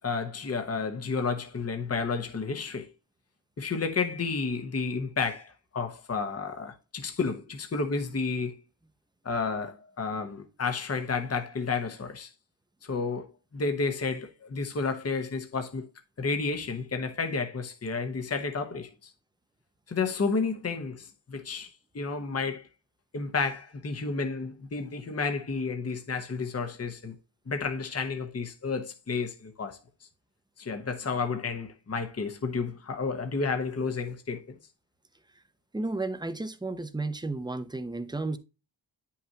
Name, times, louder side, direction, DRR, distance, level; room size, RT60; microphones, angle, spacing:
voice 1, 0.0-2.9 3.6-8.6 9.2-12.3 12.8-15.9 16.2-19.1 19.9-22.7 23.1-27.1 27.5-29.8 30.6-34.6, left 4 dB, 30° left, 1.1 m, -31 dB
voice 2, 35.7-38.4, right 2 dB, 10° right, 0.8 m, -33 dB
9.2 x 5.8 x 2.9 m
wide cardioid pair, 105°, 48 cm